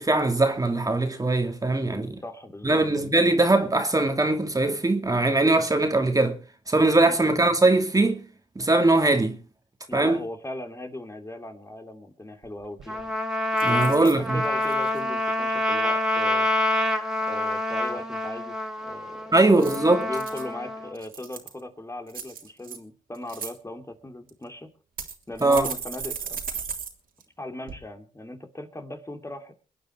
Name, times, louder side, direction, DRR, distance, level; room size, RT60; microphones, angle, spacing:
voice 1, 0.0-2.2 2.6-6.4 6.7-8.2 8.6-9.4 9.9-10.2 13.6-14.4 19.3-20.1 25.4-25.7, right 2 dB, 25° right, 2.5 m, -21 dB
voice 2, 1.9-2.8 7.0-7.2 9.9-13.1 13.7-16.5 17.3-18.5 18.8-19.6 20.0-24.7 25.3-26.4 27.4-29.5, left 1 dB, 20° left, 3.1 m, -38 dB
sound 1, 12.4-12.5 12.8-13.1 13.6-14.2 14.6-15.0 19.5-20.4 20.9-21.6 22.1-22.8 23.1-23.5 24.3-24.4 25.0-26.9 27.2-27.3 27.7-27.8, right 7 dB, 70° right, 3.2 m, -36 dB
Trumpet, 12.9-20.9, left 1 dB, 5° right, 3.5 m, -27 dB
23.0 x 9.6 x 4.6 m
supercardioid pair, 55°, 15 cm